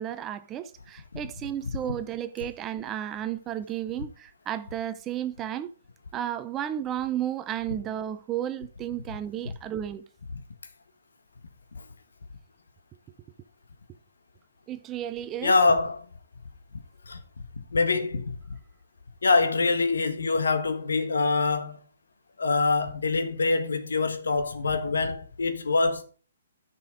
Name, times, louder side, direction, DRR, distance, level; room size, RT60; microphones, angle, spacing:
voice 1, 0.0-5.7 6.1-10.0 14.7-15.5, right 11 dB, 20° right, 0.7 m, -33 dB
voice 2, 15.4-16.1 17.1-17.2 17.7-18.4 19.2-21.8 22.4-26.0, left 3 dB, 75° left, 1.5 m, -24 dB
10.5 x 6.2 x 5.1 m
figure-of-eight pair, 130°, 0 cm